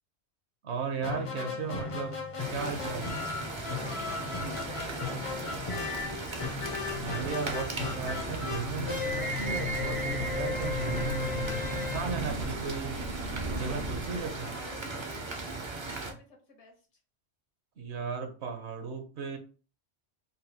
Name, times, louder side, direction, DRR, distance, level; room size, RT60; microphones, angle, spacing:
voice 1, 0.6-2.1 2.5-3.2 6.9-11.6 11.9-13.1 13.6-14.5 17.8-19.4, right 5 dB, 65° right, 5 dB, 1.0 m, -36 dB
sound 1, 1.0-12.9, left 4 dB, 40° left, 0.5 m, -35 dB
sound 2, 2.4-16.1, right 3 dB, 40° right, 0.4 m, -38 dB
voice 2, 4.4-5.8 14.4-15.3 15.9-16.9, left 3 dB, 70° left, 2 dB, 1.3 m, -50 dB
sound 3, 4.7-14.3, right 2 dB, 85° right, 1.0 m, -40 dB
4.1 x 2.3 x 2.7 m, 0.36 s
omnidirectional pair, 1.2 m